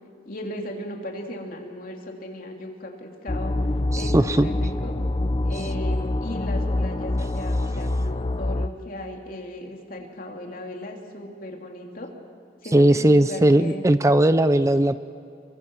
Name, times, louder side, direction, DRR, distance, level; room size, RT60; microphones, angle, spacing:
voice 1, 0.2-3.5 3.9-5.0 5.4-12.1 12.6-13.8, left 1 dB, 50° left, 1 dB, 3.2 m, -36 dB
sound 1, 3.3-8.7, left 1 dB, 30° left, 0.6 m, -25 dB
voice 2, 3.9-4.5 12.7-15.0, right 1 dB, 15° right, 12 dB, 0.5 m, -18 dB
27.5 x 23.5 x 6.4 m, 2.5 s
head